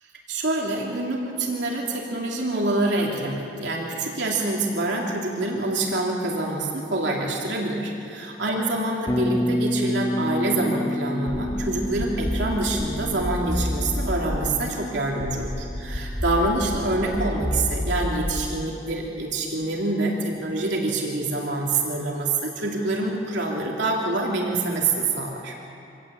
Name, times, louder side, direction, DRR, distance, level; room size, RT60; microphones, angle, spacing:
voice 1, 0.3-25.5, right 2 dB, 70° right, -2 dB, 3.1 m, -26 dB
Bass guitar, 9.1-17.1, left 1 dB, 20° left, 1.6 m, -30 dB
sound 1, 11.3-14.5 15.2-18.5, equal, ahead, 4.3 m, -30 dB
25.5 x 17.0 x 8.8 m, 2.7 s
head